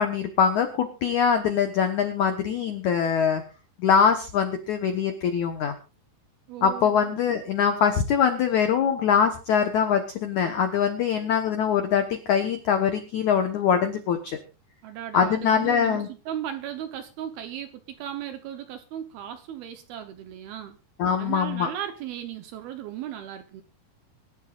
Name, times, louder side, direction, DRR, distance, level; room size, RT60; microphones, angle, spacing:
voice 1, 0.0-3.4 3.8-5.7 6.6-14.4 15.1-16.1 21.0-21.7, left 7 dB, 80° left, 6 dB, 1.7 m, -23 dB
voice 2, 6.5-7.1 14.8-20.8 21.2-23.6, right 10 dB, 70° right, 8 dB, 2.5 m, -36 dB
24.0 x 12.0 x 2.5 m, 0.33 s
omnidirectional pair, 5.2 m